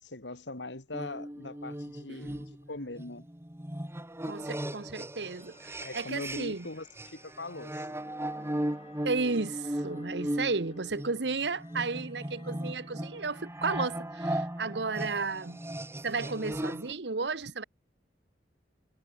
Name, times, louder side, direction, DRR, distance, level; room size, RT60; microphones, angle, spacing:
voice 1, 0.0-3.3 5.8-7.9, left 2 dB, 85° left, 2.7 m, -41 dB
sound 1, 0.9-6.7 7.0-16.9, right 1 dB, 15° right, 2.1 m, -37 dB
voice 2, 4.2-6.7 9.0-15.6 16.0-17.6, right 4 dB, 70° right, 1.2 m, -33 dB
sound 2, 5.1-15.8, left 3 dB, 35° left, 3.9 m, -59 dB
head